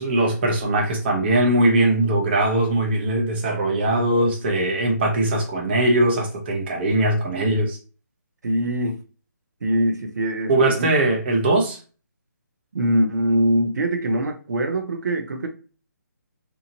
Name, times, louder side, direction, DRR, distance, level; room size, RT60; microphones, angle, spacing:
voice 1, 0.0-7.8 10.5-11.8, right 1 dB, 35° right, 0.8 m, -20 dB
voice 2, 8.4-9.0 9.6-10.9 12.7-15.5, right 1 dB, 65° right, 0.7 m, -23 dB
3.0 x 2.3 x 2.7 m
figure-of-eight pair, 150°, 10 cm